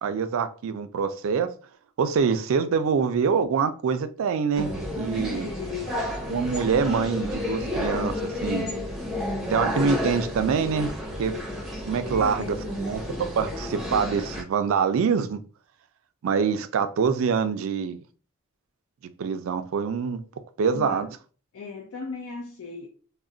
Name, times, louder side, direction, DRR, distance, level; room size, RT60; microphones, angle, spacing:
voice 1, 0.0-1.5 2.0-5.5 6.3-8.7 9.5-10.9 11.2-11.3 11.9-15.4 16.2-18.0 19.2-20.2 20.6-21.1, right 6 dB, 70° right, 0.3 m, -25 dB
sound 1, 4.5-14.4, left 1 dB, ahead, 0.6 m, -31 dB
voice 2, 5.1-6.0 12.0-12.7 20.7-21.1 21.5-22.9, left 4 dB, 75° left, 0.5 m, -37 dB
2.4 x 2.1 x 3.7 m
head